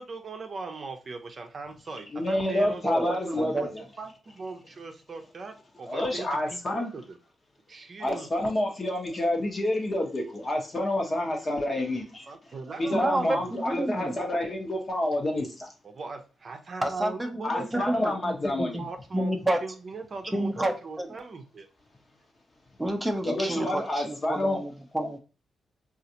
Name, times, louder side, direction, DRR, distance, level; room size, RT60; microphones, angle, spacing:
voice 1, 0.0-3.7 4.0-7.2 7.7-8.3 12.3-13.5 15.8-18.2 18.8-21.7, right 3 dB, 45° right, 5 dB, 0.6 m, -40 dB
voice 2, 2.1-3.5 5.9-6.9 8.0-12.2 12.8-15.7 17.4-18.8 23.2-24.6, left 1 dB, 40° left, 2 dB, 1.1 m, -28 dB
voice 3, 2.8-3.7 12.9-14.1 16.8-18.8 19.1-19.6 20.3-21.1 22.8-25.2, right 1 dB, 10° right, 4 dB, 0.6 m, -29 dB
3.9 x 2.5 x 2.8 m, 0.33 s
cardioid pair, 75°, 0 cm